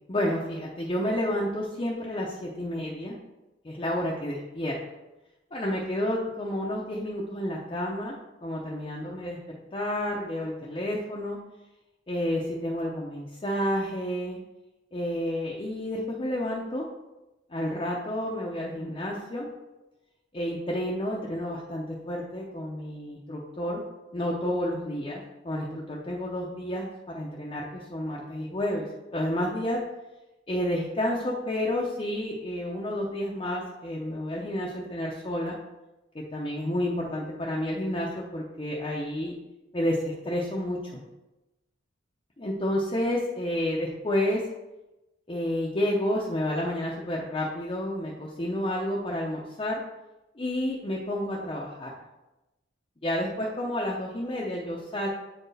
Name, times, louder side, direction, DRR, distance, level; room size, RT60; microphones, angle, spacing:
voice 1, 0.1-3.2 3.6-4.7 5.5-8.1 8.4-9.4 9.7-11.4 12.1-14.4 14.9-16.8 17.5-19.5 20.3-23.8 24.1-25.2 25.4-29.8 30.5-35.6 36.1-39.3 39.7-41.0 42.4-44.4 45.3-49.8 50.4-51.9 53.0-55.1, left 1 dB, 25° left, -4 dB, 0.6 m, -30 dB
8.1 x 4.5 x 3.3 m, 1.0 s
head